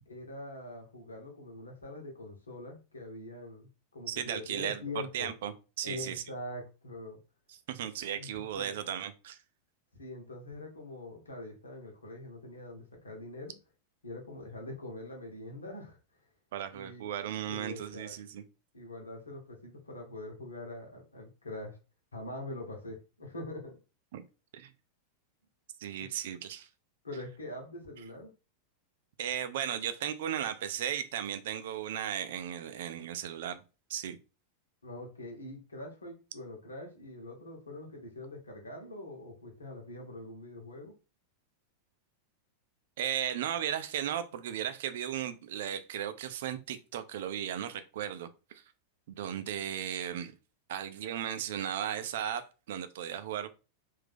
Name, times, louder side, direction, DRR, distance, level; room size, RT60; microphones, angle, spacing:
voice 1, 0.1-5.3 5.8-7.2 8.1-8.7 9.9-13.5 14.0-16.0 16.7-17.1 17.5-18.1 18.7-21.8 22.1-23.8 26.0-26.1 27.0-28.3 34.8-40.9, left 1 dB, 75° left, 1.2 m, -44 dB
voice 2, 4.1-6.2 7.7-9.4 16.5-18.4 24.1-24.2 24.5-24.7 25.8-26.7 29.2-33.6 33.9-34.2 43.0-48.3 49.2-50.3 50.7-53.5, right 10 dB, 55° right, 0.4 m, -36 dB
3.5 x 2.7 x 3.5 m
figure-of-eight pair, 90°, 0 cm